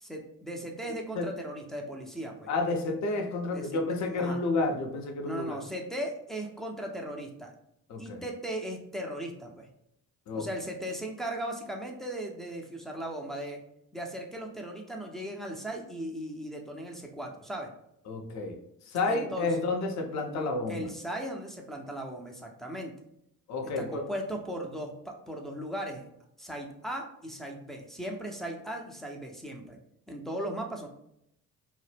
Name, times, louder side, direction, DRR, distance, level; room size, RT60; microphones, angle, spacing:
voice 1, 0.0-2.5 3.5-3.7 4.2-4.4 5.2-7.5 8.0-9.7 10.3-13.6 13.9-17.7 19.0-19.5 20.7-22.9 23.8-26.1 26.4-29.8 30.1-30.9, right 1 dB, ahead, 0 dB, 0.4 m, -37 dB
voice 2, 2.5-5.6 7.9-8.2 10.3-10.5 18.1-18.6 18.9-20.9 23.5-24.0, left 3 dB, 45° left, 3 dB, 0.6 m, -30 dB
2.0 x 2.0 x 3.2 m, 0.77 s
hypercardioid pair, 55°, 41 cm